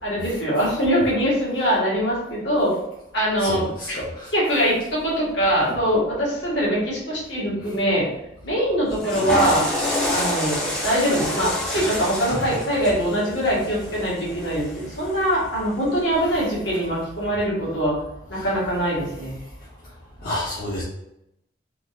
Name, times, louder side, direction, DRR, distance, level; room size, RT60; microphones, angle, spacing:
voice 1, 0.0-2.7 3.1-4.0 4.3-8.1 8.4-9.6 10.1-18.0 18.3-19.4, equal, 70° left, -6 dB, 1.4 m, -23 dB
voice 2, 3.5-4.0 20.2-20.8, left 1 dB, 50° left, -7 dB, 0.6 m, -28 dB
Water / Toilet flush, 8.9-15.1, left 1 dB, 5° left, 0.5 m, -27 dB
3.6 x 2.4 x 2.6 m, 0.83 s
head